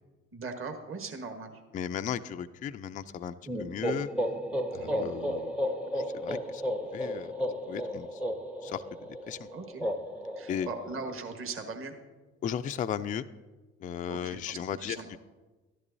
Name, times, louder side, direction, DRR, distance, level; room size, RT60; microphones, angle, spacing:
voice 1, 0.3-1.5 4.8-5.3 9.5-9.8 10.3-11.9 14.1-15.1, right 4 dB, 35° right, 5 dB, 1.4 m, -40 dB
voice 2, 1.7-4.1 4.7-5.6 5.9-6.6 6.9-7.3 7.7-8.2 8.6-9.5 10.5-10.7 12.4-13.3 13.8-15.2, left 8 dB, 25° left, 10 dB, 0.3 m, -36 dB
sound 1, 3.5-11.2, equal, 5° right, 0.7 m, -34 dB
13.0 x 11.0 x 2.7 m, 1.2 s
hypercardioid pair, 65°, 36 cm